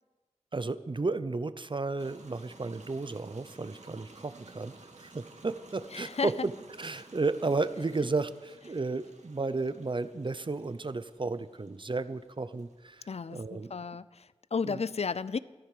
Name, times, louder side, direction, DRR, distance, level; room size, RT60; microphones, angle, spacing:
voice 1, 0.5-6.5 6.8-13.0 13.3-13.7 14.7-14.8, right 3 dB, 45° right, 14 dB, 0.7 m, -33 dB
sound 1, 2.0-13.7, right 3 dB, 85° right, 1.9 m, -55 dB
voice 2, 5.9-6.3 13.1-15.4, left 5 dB, 65° left, 18 dB, 0.5 m, -33 dB
14.5 x 12.5 x 6.8 m, 1.3 s
wide cardioid pair, 75°, 12 cm